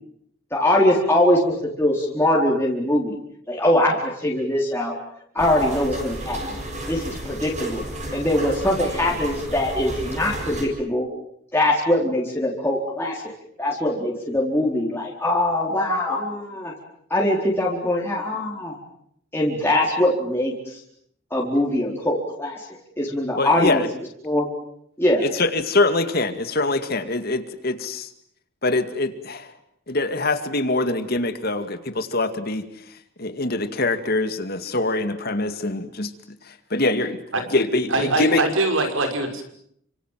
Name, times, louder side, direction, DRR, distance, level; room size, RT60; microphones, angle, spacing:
voice 1, 0.5-3.1 3.5-4.9 5.3-6.4 6.9-7.8 8.1-11.1 11.5-13.3 13.6-16.7 17.1-18.7 19.3-20.5 21.3-22.6 23.0-23.8 24.2-24.5 25.0-25.2, left 1 dB, 10° left, -3 dB, 4.4 m, -22 dB
sound 1, 5.4-10.6, right 1 dB, 35° right, 7.4 m, -32 dB
voice 2, 23.4-23.9 25.2-28.1 28.6-29.5 29.9-32.6 33.2-36.1 36.7-37.2 37.5-38.4, left 2 dB, 50° left, 9 dB, 2.3 m, -23 dB
voice 3, 37.9-39.4, right 2 dB, 85° right, 6 dB, 6.1 m, -22 dB
29.5 x 26.0 x 7.6 m, 0.72 s
head